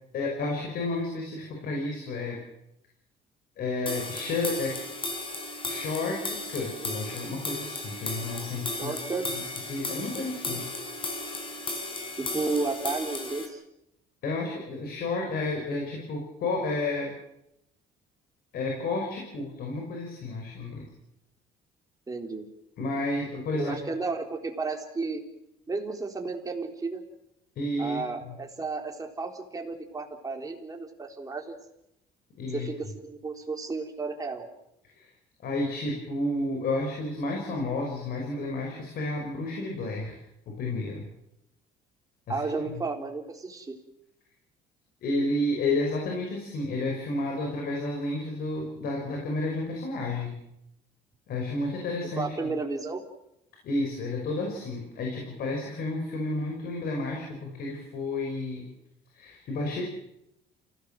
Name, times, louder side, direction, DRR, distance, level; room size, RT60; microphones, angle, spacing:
voice 1, 0.1-2.4 3.6-4.8 5.7-9.0 9.3-9.4 9.7-10.6 14.2-17.1 18.5-20.8 22.8-23.7 27.6-28.4 32.4-32.7 34.8-35.1 35.4-40.2 40.5-41.0 42.3-42.4 42.7-42.8 45.0-50.4 51.3-52.5 53.6-58.6 59.1-59.8, left 2 dB, 65° left, 1 dB, 5.6 m, -31 dB
sound 1, 3.9-13.5, left 2 dB, 30° left, 4.8 m, -35 dB
voice 2, 8.8-9.3 12.1-13.6 22.1-22.5 23.5-25.2 25.7-27.0 27.8-31.6 32.5-34.5 42.3-43.7 52.2-53.0, right 3 dB, 20° right, 2 dB, 3.9 m, -33 dB
28.5 x 17.0 x 7.7 m, 0.84 s
cardioid pair, 110°, 17 cm